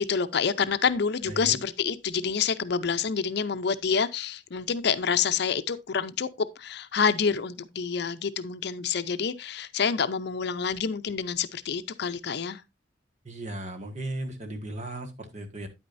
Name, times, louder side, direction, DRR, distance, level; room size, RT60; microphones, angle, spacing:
voice 1, 0.0-6.3 6.6-12.6, left 6 dB, 60° left, 0.6 m, -27 dB
voice 2, 1.3-1.6 13.2-15.7, right 1 dB, 40° right, 1.6 m, -36 dB
9.6 x 8.6 x 2.6 m
head